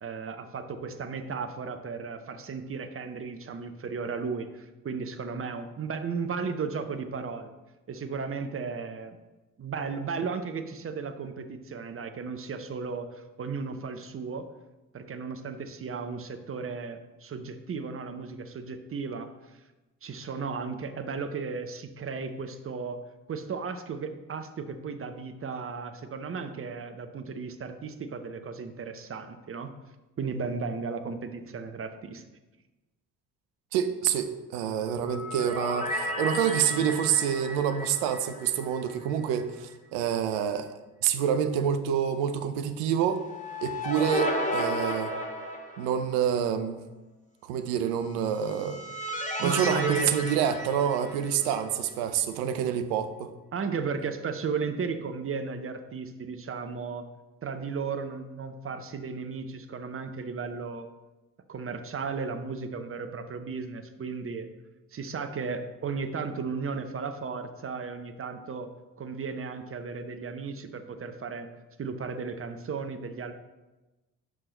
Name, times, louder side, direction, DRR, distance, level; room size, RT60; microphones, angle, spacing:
voice 1, 0.0-7.5 7.9-9.2 9.6-14.5 14.9-19.3 20.0-23.0 23.3-29.7 30.2-32.2 49.4-50.1 51.4-51.6 53.5-57.1 57.4-60.9 61.5-64.5 64.9-68.7 69.0-71.5 71.8-73.3, right 5 dB, 30° right, 8 dB, 0.7 m, -35 dB
voice 2, 33.7-40.7 41.0-43.2 43.6-45.1 45.8-46.8 47.5-48.8 49.4-53.3, right 8 dB, 70° right, 10 dB, 0.7 m, -27 dB
sound 1, 34.8-39.1 39.4-39.5 43.0-46.2 48.2-51.6, equal, 15° left, 1.2 m, -34 dB
5.7 x 5.1 x 3.8 m, 1.1 s
hypercardioid pair, 45°, 45 cm